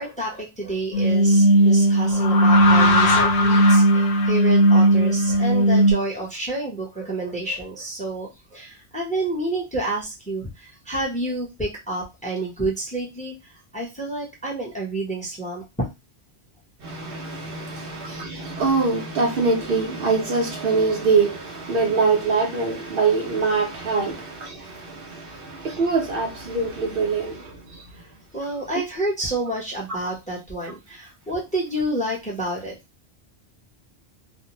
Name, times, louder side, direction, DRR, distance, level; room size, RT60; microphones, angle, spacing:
voice 1, 0.0-13.3 13.7-15.6 17.6-17.9 24.0-24.1 28.3-32.7, right 1 dB, 10° left, 0.7 m, -29 dB
sound 1, 0.9-5.9, right 1 dB, 90° left, 0.9 m, -16 dB
voice 2, 16.8-24.5 25.0-25.2 25.6-27.4, right 4 dB, 65° right, 0.8 m, -23 dB
2.5 x 2.0 x 2.9 m
omnidirectional pair, 1.1 m